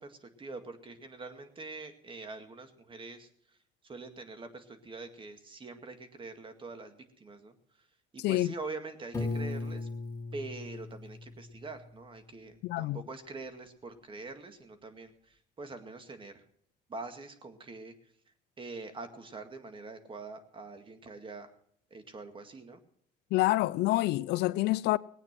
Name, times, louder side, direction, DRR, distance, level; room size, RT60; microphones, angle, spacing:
voice 1, 0.0-3.3 3.8-7.5 8.1-9.9 10.3-16.4 16.9-17.9 18.6-21.5 21.9-22.8, right 3 dB, 30° right, 2.0 m, -44 dB
voice 2, 8.2-8.5 12.6-13.0 23.3-25.0, left 17 dB, 80° left, 0.5 m, -27 dB
Piano, 9.1-12.1, left 3 dB, 15° left, 3.7 m, -38 dB
18.5 x 8.9 x 6.0 m
cardioid pair, 110°, 17 cm